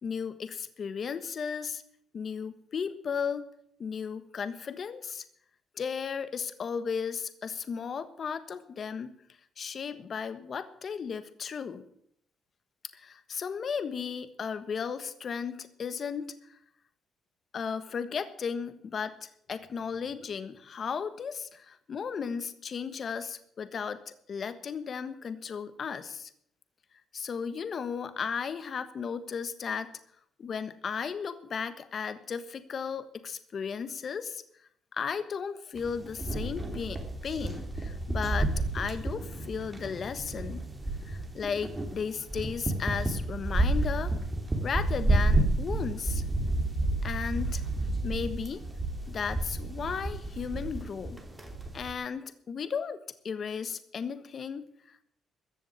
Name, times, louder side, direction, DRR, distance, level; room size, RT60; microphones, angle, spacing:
voice 1, 0.0-1.8 2.1-3.5 3.8-5.2 5.8-9.1 9.6-11.8 12.9-16.2 17.5-24.0 24.3-26.3 27.1-29.9 30.4-34.4 34.9-40.7 41.1-44.1 44.6-46.2 47.0-47.6 48.0-48.6 49.1-51.2 51.7-53.0 53.2-55.0, left 6 dB, 50° left, 12 dB, 1.4 m, -35 dB
sound 1, 35.8-51.9, right 2 dB, 15° right, 3.0 m, -31 dB
14.5 x 7.3 x 9.7 m, 0.70 s
cardioid pair, 90°, 0 cm